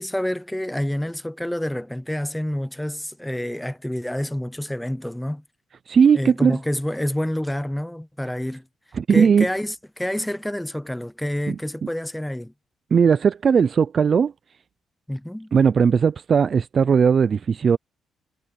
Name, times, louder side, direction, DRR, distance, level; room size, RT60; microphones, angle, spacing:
voice 1, 0.0-5.4 6.1-8.6 9.1-12.5 15.1-15.5, left 1 dB, 5° left, 0.8 m, -28 dB
voice 2, 5.9-6.6 8.9-9.5 11.5-11.6 12.9-14.3 15.5-17.8, right 6 dB, 45° right, 0.4 m, -18 dB
cardioid pair, 90°, 0 cm